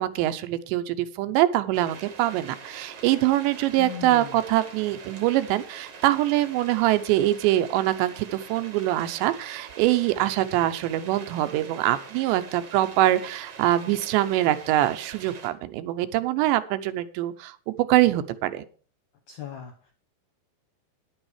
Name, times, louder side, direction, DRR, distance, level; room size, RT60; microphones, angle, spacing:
voice 1, 0.0-18.6, right 14 dB, 80° right, 11 dB, 2.9 m, -24 dB
sound 1, 1.7-15.5, right 5 dB, 60° right, 1.6 m, -44 dB
voice 2, 3.8-4.4 19.3-19.9, left 8 dB, 75° left, 3 dB, 1.7 m, -38 dB
10.5 x 9.0 x 4.9 m, 0.41 s
omnidirectional pair, 5.1 m